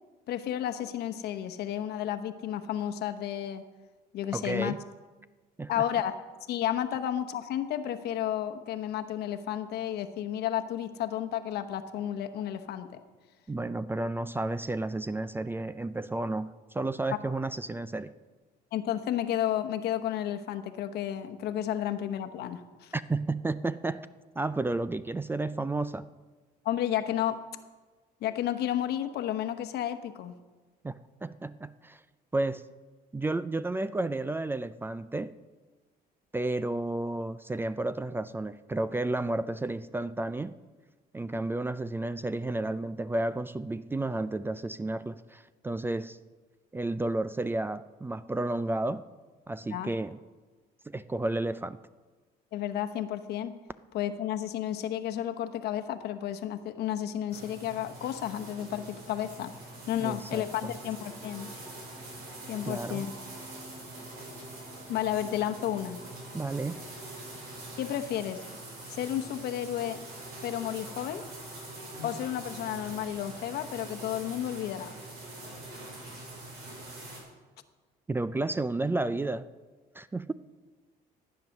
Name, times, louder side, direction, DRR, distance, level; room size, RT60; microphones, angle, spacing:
voice 1, 0.3-3.6 4.1-4.7 5.7-13.0 18.7-22.9 26.6-27.4 28.2-30.3 49.6-49.9 52.5-53.6 53.9-59.5 59.9-61.5 62.5-63.1 64.9-66.0 67.8-68.4 68.9-70.0 70.4-71.2 72.0-74.9, left 11 dB, 75° left, 8 dB, 1.0 m, -32 dB
voice 2, 4.3-4.8 5.6-5.8 13.5-18.1 22.9-24.1 24.4-26.1 30.8-32.0 32.3-32.6 33.1-35.4 36.3-40.6 41.1-46.2 46.7-49.0 49.5-50.2 50.9-51.8 60.0-60.4 62.7-63.0 66.3-66.8 78.1-79.5 79.9-80.3, right 2 dB, 15° right, 15 dB, 0.4 m, -32 dB
sound 1, 57.3-77.2, right 1 dB, 70° right, 5.5 m, -44 dB
13.5 x 9.2 x 6.5 m, 1.3 s
cardioid pair, 110°, 17 cm